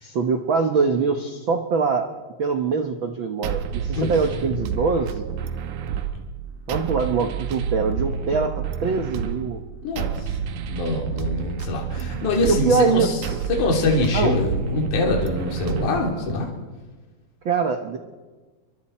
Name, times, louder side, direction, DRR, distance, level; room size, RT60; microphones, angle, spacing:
voice 1, 0.0-2.1 2.4-5.3 6.7-9.6 12.0-12.1 12.4-13.4 14.1-14.3 17.4-18.0, right 5 dB, 90° right, 5 dB, 1.0 m, -23 dB
sound 1, 3.4-16.5, right 7 dB, 70° right, 2.1 m, -30 dB
voice 2, 3.9-4.5 9.8-10.4 10.7-13.2 13.5-16.5, left 2 dB, 60° left, 0 dB, 4.2 m, -24 dB
29.5 x 24.0 x 4.4 m, 1.3 s
omnidirectional pair, 4.1 m